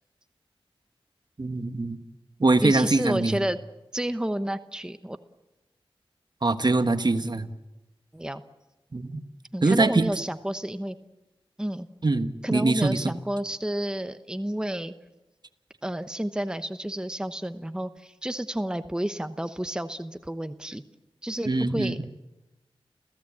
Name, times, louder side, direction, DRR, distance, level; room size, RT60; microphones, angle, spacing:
voice 1, 1.4-2.0 2.4-3.4 6.4-7.5 8.9-9.2 9.6-10.1 12.0-13.1 21.5-22.1, right 2 dB, 45° right, 9 dB, 1.4 m, -23 dB
voice 2, 2.6-3.6 3.9-5.2 8.1-8.4 9.5-11.0 11.6-11.9 12.4-14.9 15.8-20.8 21.2-22.1, right 1 dB, 10° right, 10 dB, 1.0 m, -30 dB
29.5 x 16.0 x 8.6 m, 1.0 s
wide cardioid pair, 55°, 10 cm